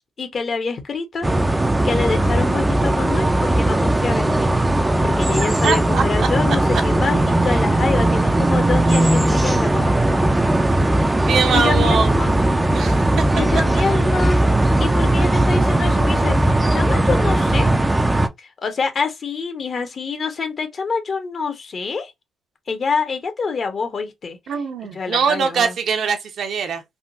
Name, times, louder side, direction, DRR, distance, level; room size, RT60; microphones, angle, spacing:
voice 1, 0.2-4.5 5.0-10.2 11.5-12.4 13.4-14.4 14.8-17.7 18.4-22.1 22.7-24.4 24.9-25.7, left 4 dB, 45° left, 0.9 m, -26 dB
sound 1, 1.2-18.3, right 1 dB, 15° right, 0.4 m, -18 dB
voice 2, 5.6-6.3 10.7-10.8 11.3-12.2 12.7-13.0 24.5-26.8, right 6 dB, 65° right, 0.7 m, -22 dB
3.5 x 2.2 x 2.6 m
cardioid pair, 90°, 0 cm